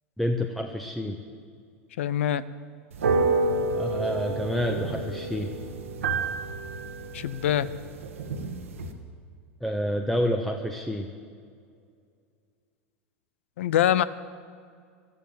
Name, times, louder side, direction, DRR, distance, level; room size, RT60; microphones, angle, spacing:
voice 1, 0.2-1.2 3.7-5.5 9.6-11.1, equal, ahead, 3 dB, 1.0 m, -28 dB
voice 2, 2.0-2.5 7.1-7.7 13.6-14.0, left 11 dB, 70° left, 17 dB, 0.6 m, -24 dB
sound 1, 2.9-8.9, right 3 dB, 80° right, 1.4 m, -29 dB
13.5 x 12.5 x 7.7 m, 2.2 s
hypercardioid pair, 90°, 7 cm